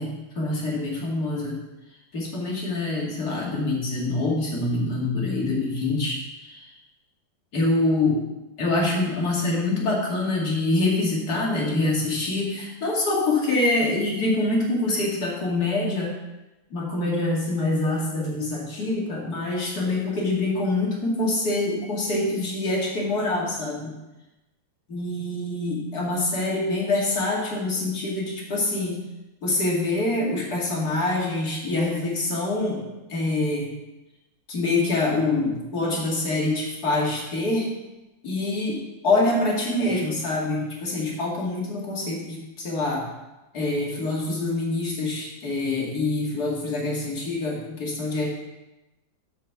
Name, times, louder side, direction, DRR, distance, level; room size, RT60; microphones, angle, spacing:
voice 1, 0.0-1.6 2.1-6.7 7.5-8.2 8.6-16.1 16.7-23.9 24.9-29.0 29.4-32.8 33.1-33.7 34.5-37.7 38.2-38.8 39.0-43.0 43.5-48.3, left 2 dB, 60° left, -3 dB, 2.6 m, -25 dB
7.3 x 5.2 x 6.9 m, 1.0 s
omnidirectional pair, 1.9 m